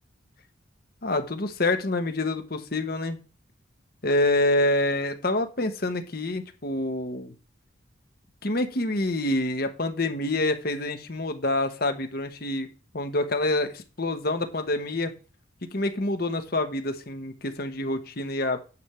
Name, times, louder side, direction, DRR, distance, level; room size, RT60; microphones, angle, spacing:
voice 1, 1.0-3.2 4.0-7.3 8.4-12.7 12.9-15.1 15.7-18.6, left 2 dB, 45° left, 7 dB, 1.1 m, -27 dB
9.6 x 3.5 x 6.9 m, 0.34 s
head